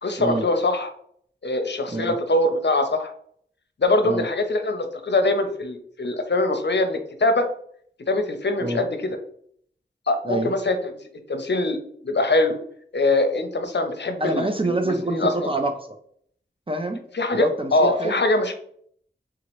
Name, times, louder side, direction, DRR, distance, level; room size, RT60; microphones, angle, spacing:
voice 1, 0.0-0.9 1.4-3.1 3.8-7.5 8.1-9.2 10.1-11.0 11.3-11.8 12.0-12.6 12.9-15.5 17.1-18.5, left 2 dB, 65° left, 7 dB, 0.6 m, -23 dB
voice 2, 14.2-16.0 16.7-17.0 17.3-18.2, right 2 dB, 30° right, 5 dB, 0.4 m, -26 dB
3.6 x 2.9 x 3.0 m, 0.63 s
wide cardioid pair, 45°, 19 cm